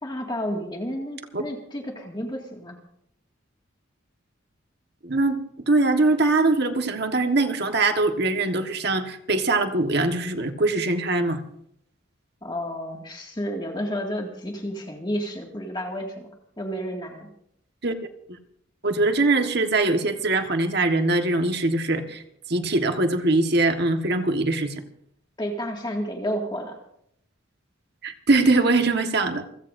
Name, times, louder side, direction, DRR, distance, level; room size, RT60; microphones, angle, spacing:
voice 1, 0.0-2.8 12.4-16.3 16.6-17.3 25.4-26.8, equal, 20° left, 1 dB, 2.1 m, -31 dB
voice 2, 5.0-11.4 17.8-17.9 18.8-22.2 22.5-24.8 28.0-29.5, right 2 dB, 55° right, 6 dB, 1.5 m, -22 dB
28.5 x 16.0 x 2.7 m, 0.72 s
head